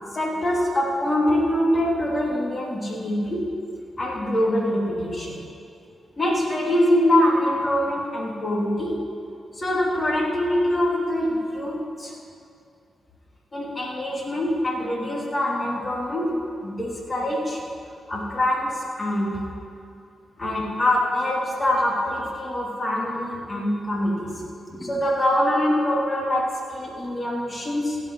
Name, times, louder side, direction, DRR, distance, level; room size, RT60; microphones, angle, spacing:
voice 1, 0.1-3.5 4.0-5.4 6.2-9.0 9.5-12.1 13.5-17.7 18.1-19.4 20.4-28.0, left 1 dB, 35° left, -2 dB, 3.0 m, -24 dB
16.5 x 5.6 x 6.3 m, 2.5 s
supercardioid pair, 45°, 0 cm